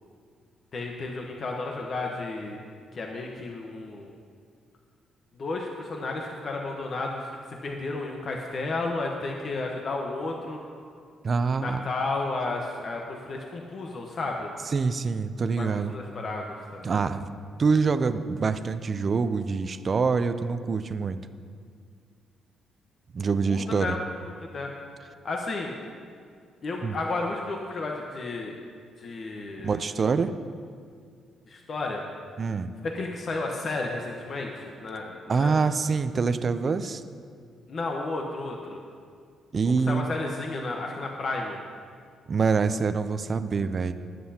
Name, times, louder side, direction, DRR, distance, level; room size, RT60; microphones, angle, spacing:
voice 1, 0.7-2.6 2.9-4.1 5.3-10.6 11.6-14.5 15.6-17.1 23.5-24.0 24.4-24.7 25.2-25.8 26.6-28.5 29.0-29.8 31.5-32.0 32.8-35.7 37.7-38.8 39.6-41.6, left 3 dB, 50° left, 1 dB, 1.1 m, -32 dB
voice 2, 11.2-11.8 14.7-15.9 16.8-17.3 17.6-21.2 23.1-23.9 26.8-27.0 29.6-30.3 32.4-32.7 35.3-37.0 39.5-40.1 42.3-43.9, right 5 dB, 40° right, 10 dB, 0.5 m, -25 dB
20.5 x 7.7 x 2.9 m, 2.2 s
cardioid pair, 90°, 0 cm